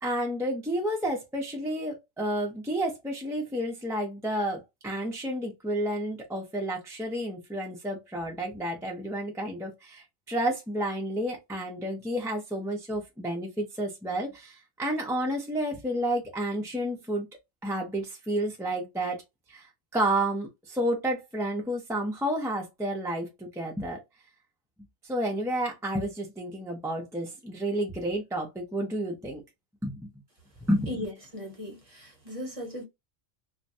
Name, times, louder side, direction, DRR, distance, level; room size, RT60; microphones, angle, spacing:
voice 1, 0.0-17.3 17.6-19.2 19.5-24.0 25.0-29.4 29.8-30.1 30.7-31.0, right 1 dB, 5° right, 0.4 m, -31 dB
voice 2, 30.9-32.8, left 1 dB, 30° right, 0.9 m, -38 dB
2.5 x 2.2 x 2.6 m
omnidirectional pair, 1.2 m